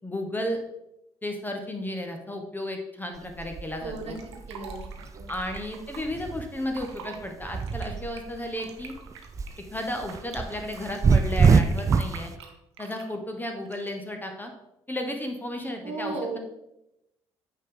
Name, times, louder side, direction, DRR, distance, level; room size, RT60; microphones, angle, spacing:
voice 1, 0.0-0.6 1.2-4.2 5.3-8.9 9.7-12.3 12.8-14.5 14.9-16.4, left 1 dB, 15° left, 4 dB, 0.9 m, -33 dB
sound 1, 3.2-8.4 8.8-12.2, right 5 dB, 20° right, 0.4 m, -25 dB
voice 2, 3.8-4.1 4.5-4.9 5.1-5.2 15.8-16.4, right 3 dB, 45° right, 2 dB, 1.3 m, -34 dB
Fill (with liquid), 4.0-6.0 6.6-7.2 7.5-10.4 10.7-13.1 13.6-14.0, right 7 dB, 75° right, 0.7 m, -44 dB
8.7 x 3.7 x 3.7 m, 0.87 s
figure-of-eight pair, 45°, 14 cm